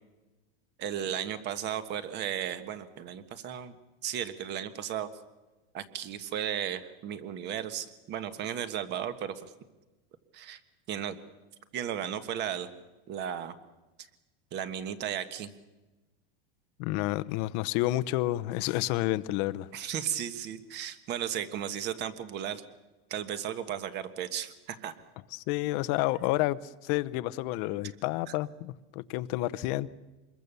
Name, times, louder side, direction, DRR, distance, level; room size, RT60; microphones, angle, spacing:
voice 1, 0.8-3.8 4.0-5.1 5.7-9.5 10.3-10.6 10.9-11.2 11.7-12.7 13.1-13.5 14.5-15.5 19.7-22.6 23.1-24.9, right 9 dB, 35° right, 1.4 m, -35 dB
voice 2, 16.8-19.7 25.3-29.9, left 17 dB, 45° left, 0.7 m, -30 dB
26.0 x 22.0 x 6.9 m
supercardioid pair, 155°, 32 cm